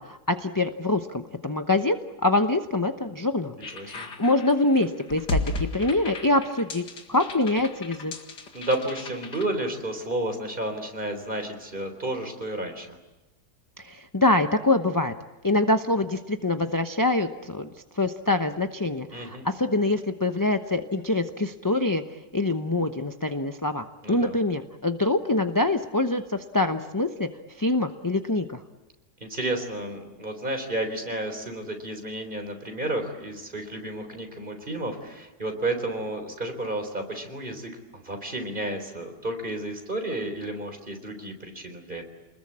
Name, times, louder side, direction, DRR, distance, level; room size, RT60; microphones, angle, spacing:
voice 1, 0.0-3.6 3.9-8.1 13.8-15.1 15.4-22.0 22.3-27.3 27.6-28.6, left 2 dB, 20° left, 6 dB, 0.6 m, -25 dB
sound 1, 3.6-9.4, left 2 dB, 75° left, 2.6 m, -34 dB
voice 2, 3.7-4.1 8.5-13.0 19.1-19.5 24.0-24.4 29.2-42.0, right 1 dB, 30° right, 5 dB, 4.1 m, -32 dB
29.5 x 21.0 x 8.7 m, 1.1 s
omnidirectional pair, 1.8 m